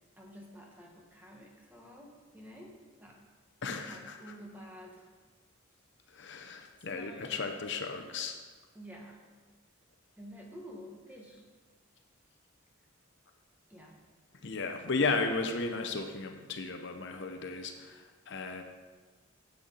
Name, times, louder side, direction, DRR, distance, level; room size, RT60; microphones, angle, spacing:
voice 1, 0.2-2.7 3.0-3.2 3.7-5.1 6.9-7.6 8.7-9.2 10.2-11.4 13.7-14.0, equal, 10° right, -2 dB, 1.5 m, -50 dB
voice 2, 3.6-4.2 6.1-8.4 14.4-18.6, left 3 dB, 60° left, 5 dB, 0.8 m, -34 dB
10.0 x 8.1 x 4.0 m, 1.4 s
head